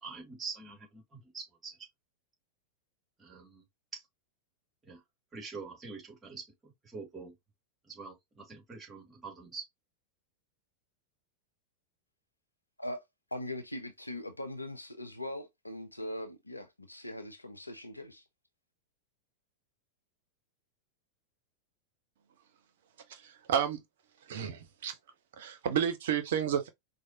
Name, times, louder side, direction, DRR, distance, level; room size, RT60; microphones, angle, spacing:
voice 1, 0.0-1.8 3.2-3.6 3.9-4.0 4.8-5.0 5.3-7.4 7.9-9.7, right 4 dB, 15° right, 2.0 m, -45 dB
voice 2, 13.3-18.2, left 1 dB, 85° left, 0.7 m, -41 dB
voice 3, 23.1-23.8 24.3-25.0 25.4-26.7, right 8 dB, 60° right, 0.8 m, -31 dB
4.6 x 2.5 x 2.7 m
figure-of-eight pair, 90°, 0 cm